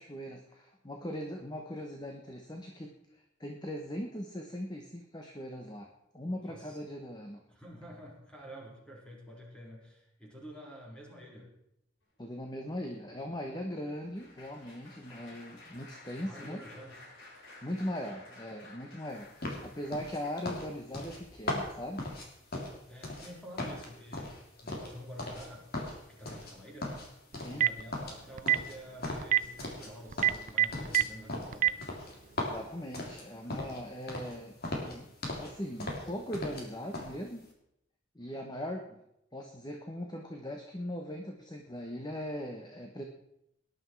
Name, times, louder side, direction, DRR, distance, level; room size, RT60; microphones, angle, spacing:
voice 1, 0.0-2.9 3.4-5.9 6.1-7.4 12.2-16.6 17.6-22.1 27.4-27.7 32.4-35.1 35.4-37.5 38.1-39.0 39.3-43.0, equal, 20° left, 3 dB, 1.2 m, -40 dB
voice 2, 6.4-6.8 7.5-11.5 16.2-17.0 22.9-25.7 26.1-27.1 27.5-31.8, equal, 5° left, -3 dB, 4.3 m, -48 dB
Applause, 12.4-20.7 21.4-21.6 21.9-22.1, left 2 dB, 80° left, 7.3 m, -54 dB
sound 1, 19.4-23.3 23.6-25.5 25.7-26.5 26.8-27.7 27.9-29.9 30.2-33.8 34.1-34.4 34.6-35.5 35.8-36.7 36.9-37.1, left 1 dB, 50° left, 3.5 m, -38 dB
Telephone, 27.4-27.8 28.4-28.6 29.2-29.4 30.1-31.0 31.5-31.7, right 12 dB, 40° right, 0.5 m, -23 dB
18.5 x 11.0 x 4.7 m, 0.80 s
head